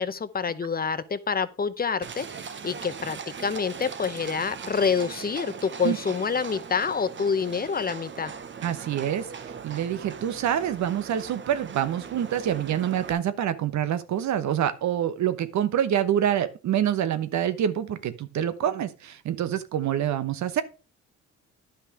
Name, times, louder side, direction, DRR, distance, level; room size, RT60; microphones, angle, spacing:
voice 1, 0.0-8.3, left 5 dB, 30° left, 0.7 m, -27 dB
Livestock farm animals working animals, 2.0-13.1, right 6 dB, 40° right, 0.9 m, -40 dB
voice 2, 8.6-20.6, right 10 dB, 70° right, 1.0 m, -26 dB
10.5 x 5.7 x 4.8 m
cardioid pair, 90°, 30 cm